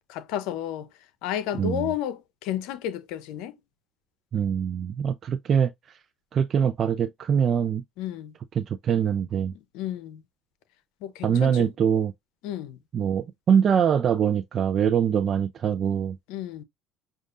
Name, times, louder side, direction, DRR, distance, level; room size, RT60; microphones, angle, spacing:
voice 1, 0.1-0.9 1.2-3.6 8.0-8.3 9.7-10.2 11.0-11.7 12.4-12.8 16.3-16.6, left 11 dB, 80° left, 0.7 m, -32 dB
voice 2, 1.6-1.9 4.3-5.7 6.3-7.8 8.5-9.5 11.2-12.1 12.9-16.2, right 8 dB, 45° right, 0.4 m, -23 dB
6.5 x 2.4 x 2.5 m
supercardioid pair, 90°, 0 cm